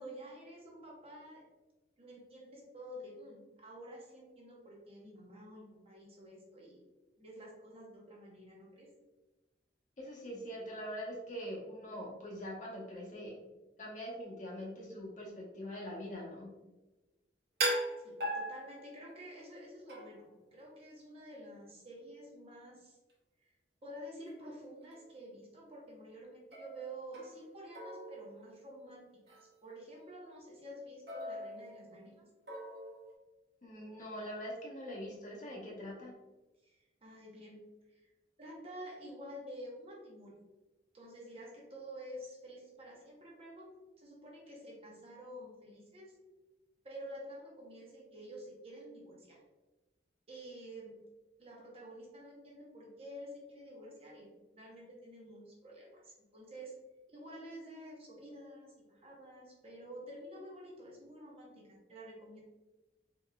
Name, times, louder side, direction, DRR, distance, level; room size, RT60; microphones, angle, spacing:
voice 1, 0.0-1.4 2.0-6.8 7.2-8.9 18.0-23.0 23.4-23.5 23.8-32.2 36.6-37.6 37.9-38.1 38.4-40.4 40.9-46.1 46.8-49.4 50.3-51.0 51.4-56.8 57.1-62.4, equal, 35° right, -3 dB, 0.9 m, -50 dB
voice 2, 10.0-13.4 13.8-16.5 33.6-36.1, equal, 45° left, -4 dB, 1.0 m, -43 dB
sound 1, 17.6-19.2 19.9-20.3 24.3-24.4 24.9-25.2 26.5-27.5 27.7-28.8 29.3-29.5 31.1-32.1 32.5-33.1, right 1 dB, 60° right, 1.0 m, -39 dB
3.9 x 3.5 x 2.3 m, 1.1 s
head